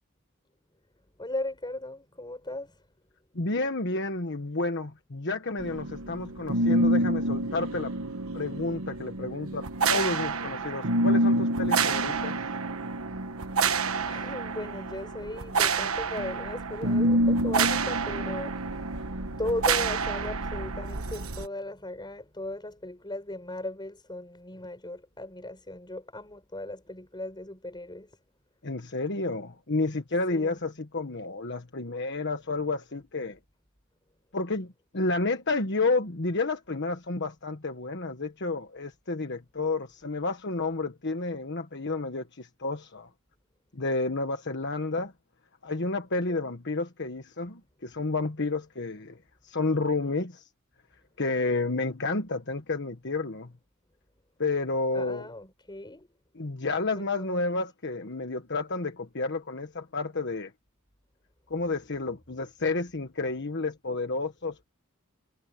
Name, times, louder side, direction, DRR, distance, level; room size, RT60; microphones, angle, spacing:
voice 1, 1.2-2.9 14.0-19.0 19.3-28.2 30.3-30.6 46.3-46.5 54.9-56.1 56.9-57.4, left 1 dB, 20° left, 4.9 m, -37 dB
voice 2, 3.3-7.9 8.3-12.4 28.6-33.4 34.3-43.1 43.7-45.1 45.6-49.2 49.4-50.5 51.2-53.5 54.4-55.3 56.3-60.5 61.5-64.6, left 3 dB, 55° left, 1.4 m, -30 dB
sound 1, 5.6-21.5, right 2 dB, 75° right, 1.3 m, -27 dB
head